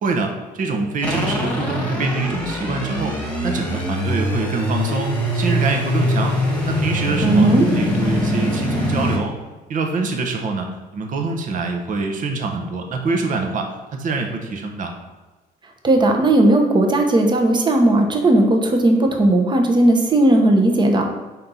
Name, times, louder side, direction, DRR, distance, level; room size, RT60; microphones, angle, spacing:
voice 1, 0.0-3.2 3.4-6.4 6.7-9.3 9.7-14.9, right 3 dB, 50° right, 3 dB, 1.0 m, -25 dB
sound 1, 1.0-9.2, equal, 10° left, 1.4 m, -22 dB
voice 2, 7.2-7.7 15.8-21.1, right 1 dB, 25° right, 3 dB, 1.0 m, -16 dB
4.3 x 3.9 x 5.5 m, 1.2 s
cardioid pair, 110°, 17 cm